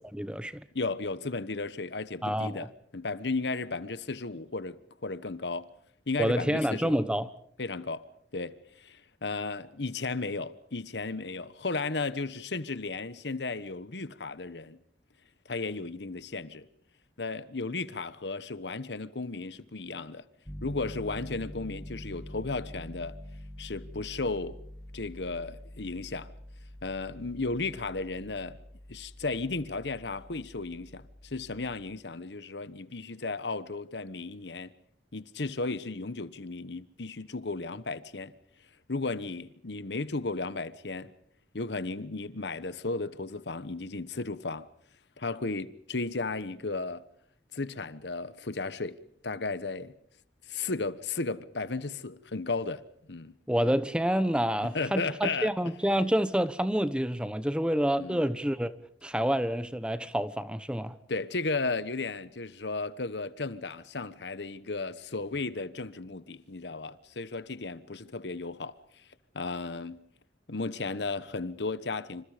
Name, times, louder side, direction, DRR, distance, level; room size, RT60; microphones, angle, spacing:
voice 1, 0.1-0.6 2.2-2.7 6.2-7.3 53.5-58.7 59.0-61.0, equal, 5° right, 1.0 m, -28 dB
voice 2, 0.7-5.7 6.1-7.0 7.6-8.0 8.3-14.8 15.5-16.7 17.2-20.2 20.6-23.2 23.6-24.6 24.9-26.3 26.8-28.6 28.9-34.7 35.1-38.3 38.9-41.1 41.5-44.7 45.2-47.0 47.5-49.0 49.2-49.9 50.5-52.8 53.1-53.3 54.7-55.5 58.0-58.2 61.1-68.8 69.3-70.0 70.5-72.3, left 3 dB, 80° left, 1.2 m, -34 dB
Piano, 20.5-31.8, left 1 dB, 15° left, 2.0 m, -46 dB
27.5 x 27.0 x 5.1 m
head